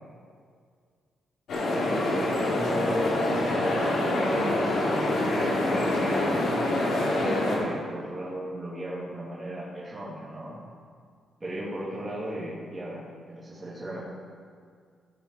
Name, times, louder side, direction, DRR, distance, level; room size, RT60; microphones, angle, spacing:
sound 1, 1.5-7.6, left 1 dB, 70° left, 3.2 m, -26 dB
voice 1, 1.7-10.6 11.4-14.0, right 1 dB, 15° right, -9 dB, 2.9 m, -36 dB
16.5 x 7.2 x 4.9 m, 2.1 s
cardioid pair, 135°, 0 cm